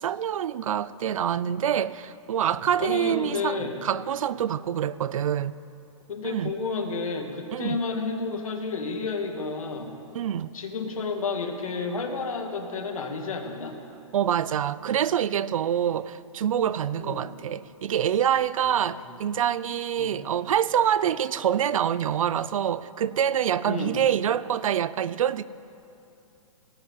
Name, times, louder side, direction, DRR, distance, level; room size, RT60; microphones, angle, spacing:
voice 1, 0.0-5.6 6.2-6.5 7.5-7.8 10.1-10.5 14.1-25.4, right 9 dB, 80° right, 0.5 m, -26 dB
voice 2, 2.8-3.8 6.1-10.0 10.5-13.8 17.0-17.3 18.7-19.1 20.0-20.2 23.7-24.0, left 4 dB, 90° left, 2.2 m, -31 dB
17.5 x 8.5 x 7.5 m
hypercardioid pair, 150°, 17 cm